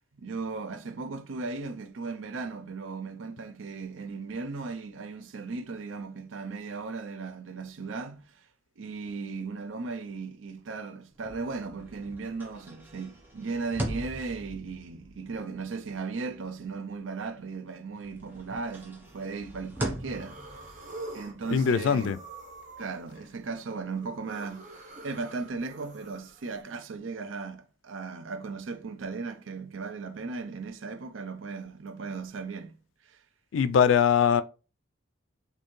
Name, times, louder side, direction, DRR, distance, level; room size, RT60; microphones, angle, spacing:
voice 1, 0.2-8.3 8.8-20.4 21.1-22.2 22.8-24.7 25.0-32.8 33.0-33.2, right 4 dB, 85° right, 0.5 m, -37 dB
sound 1, 11.1-17.6 17.9-23.3, right 1 dB, 10° right, 0.8 m, -41 dB
sound 2, 19.1-19.5 19.9-26.6, right 2 dB, 40° right, 0.8 m, -46 dB
voice 2, 21.5-22.2 33.5-34.4, left 7 dB, 90° left, 0.3 m, -22 dB
4.4 x 2.7 x 3.1 m
head